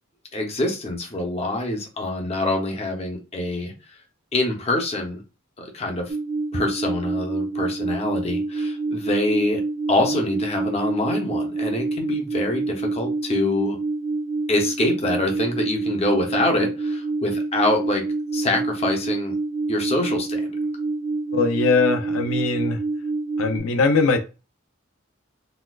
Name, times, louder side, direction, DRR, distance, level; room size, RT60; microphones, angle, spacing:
voice 1, 0.3-3.7 4.3-5.2 5.6-6.2 6.5-9.6 9.9-13.8 14.5-18.0 18.3-19.3 19.7-20.5, left 2 dB, 30° left, 2 dB, 0.7 m, -25 dB
sound 1, 6.1-23.6, right 3 dB, 35° right, 0.8 m, -27 dB
voice 2, 21.3-22.8 23.4-24.3, left 4 dB, 80° left, 6 dB, 0.5 m, -21 dB
4.1 x 2.2 x 2.3 m, 0.31 s
head